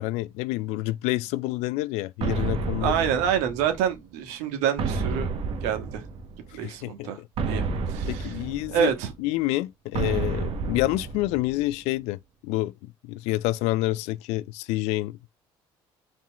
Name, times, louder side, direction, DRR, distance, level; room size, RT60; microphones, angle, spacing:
voice 1, 0.0-3.0 6.5-7.1 8.1-8.9 9.2-15.2, left 18 dB, 80° left, 0.4 m, -28 dB
sound 1, 2.2-4.0 4.8-6.5 7.4-9.1 9.9-11.7, right 4 dB, 60° right, 1.2 m, -30 dB
voice 2, 2.8-5.3 5.6-6.0 6.5-7.2 7.5-8.4 8.7-9.1, right 9 dB, 85° right, 1.4 m, -27 dB
4.3 x 3.7 x 2.9 m
supercardioid pair, 95°, 11 cm